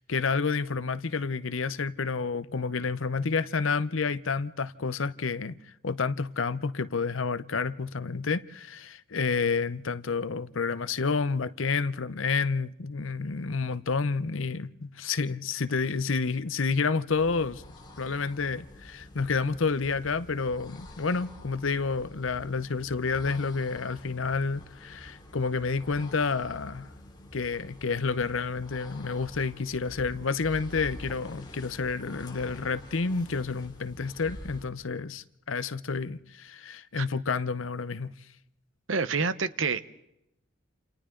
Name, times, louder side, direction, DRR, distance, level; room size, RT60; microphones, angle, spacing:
voice 1, 0.0-5.6 5.8-17.6 18.0-26.9 27.3-38.1, left 4 dB, 80° left, 0.8 m, -29 dB
sound 1, 17.0-34.8, left 1 dB, 20° left, 3.0 m, -47 dB
voice 2, 38.9-40.0, right 5 dB, 75° right, 1.0 m, -28 dB
28.5 x 28.5 x 3.9 m
head